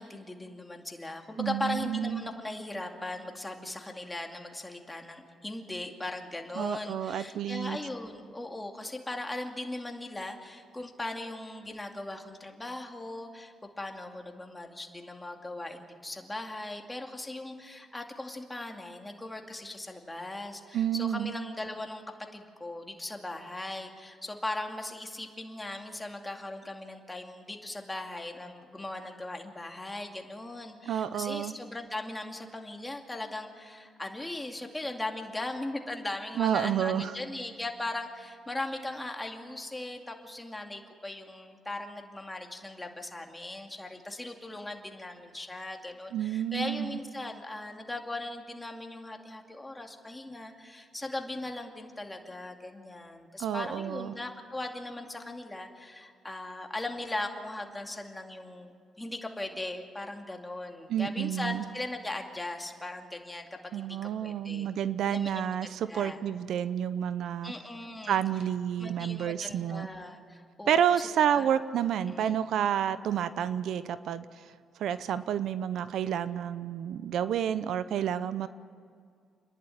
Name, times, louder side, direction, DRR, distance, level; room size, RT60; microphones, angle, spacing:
voice 1, 0.0-22.0 22.3-58.7 59.0-64.7 65.1-65.6 65.9-66.2 67.4-68.2 68.8-70.8 71.4-71.5 72.1-72.3, left 2 dB, 15° left, 3 dB, 2.4 m, -39 dB
voice 2, 1.4-2.3 6.6-7.8 20.7-21.3 30.9-31.6 36.4-37.1 46.1-47.0 53.4-54.1 60.9-61.6 63.7-67.5 68.1-69.9 70.7-74.4 74.8-78.5, right 9 dB, 75° right, 14 dB, 0.7 m, -30 dB
29.0 x 11.0 x 9.2 m, 2.1 s
cardioid pair, 90°, 0 cm